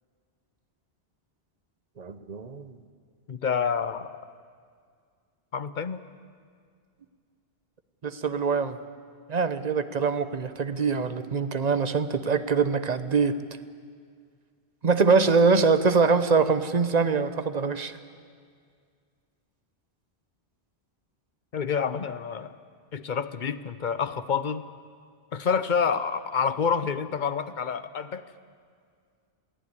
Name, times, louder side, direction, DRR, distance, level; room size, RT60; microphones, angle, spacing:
voice 1, 2.0-2.7 8.0-8.8 9.3-13.4 14.8-18.0, right 4 dB, 40° right, 11 dB, 1.0 m, -23 dB
voice 2, 3.3-4.1 5.5-6.0 21.5-22.6 22.9-24.6 25.3-28.2, left 6 dB, 50° left, 13 dB, 0.9 m, -28 dB
22.5 x 15.0 x 9.7 m, 2.1 s
omnidirectional pair, 1.1 m